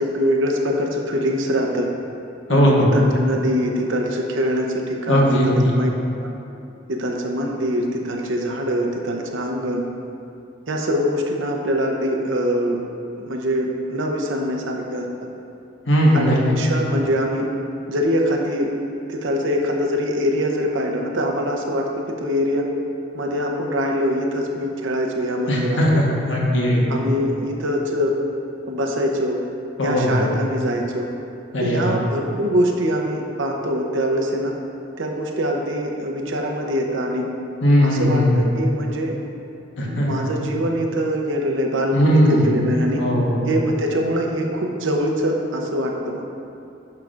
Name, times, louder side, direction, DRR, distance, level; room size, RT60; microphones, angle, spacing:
voice 1, 0.0-1.9 2.5-5.9 6.2-6.3 6.9-9.9 10.7-12.8 13.2-15.1 16.1-17.5 17.9-18.7 19.1-21.9 22.2-22.6 23.1-26.2 26.9-28.1 28.7-29.4 29.8-31.1 31.6-34.5 35.0-37.3 37.8-39.2 39.8-43.0 43.4-46.3, equal, 80° right, 1 dB, 0.8 m, -23 dB
voice 2, 2.5-2.9 5.1-5.8 15.9-16.4 25.5-27.0 29.8-30.2 31.5-31.9 37.6-38.4 39.8-40.2 41.9-42.5 43.0-43.5, equal, 75° left, -4 dB, 1.3 m, -18 dB
9.4 x 5.8 x 2.5 m, 2.7 s
head